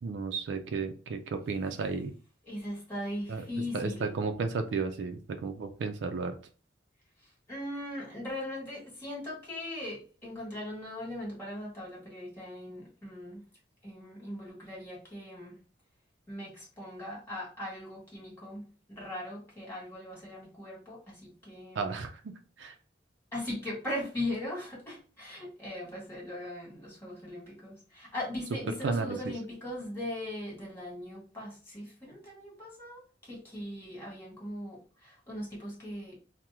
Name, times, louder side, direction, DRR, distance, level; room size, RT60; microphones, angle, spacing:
voice 1, 0.0-2.1 3.3-3.4 3.7-6.3 21.8-22.3 22.6-22.7 28.8-29.2, right 4 dB, 75° right, 6 dB, 0.4 m, -33 dB
voice 2, 2.4-4.1 7.5-13.4 13.8-15.5 16.3-22.0 23.3-34.8 35.0-36.2, left 1 dB, 15° left, -5 dB, 1.5 m, -39 dB
2.9 x 2.0 x 3.4 m, 0.38 s
head